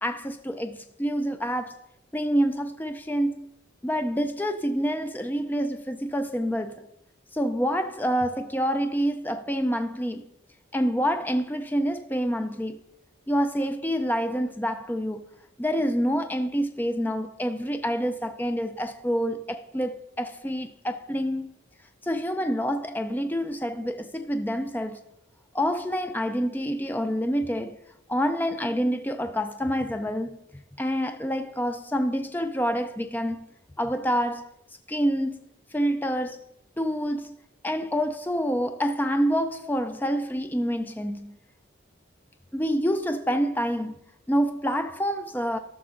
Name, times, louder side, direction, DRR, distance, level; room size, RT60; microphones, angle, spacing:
voice 1, 0.0-1.8 2.1-3.5 3.8-6.9 7.3-10.2 10.7-12.8 13.3-15.2 15.6-21.5 22.0-25.0 25.5-27.8 28.1-30.4 30.8-33.5 33.8-34.5 34.9-36.4 36.8-37.3 37.6-41.3 42.5-43.9 44.3-45.6, equal, 10° left, 0.4 m, -27 dB
13.5 x 5.9 x 3.7 m
head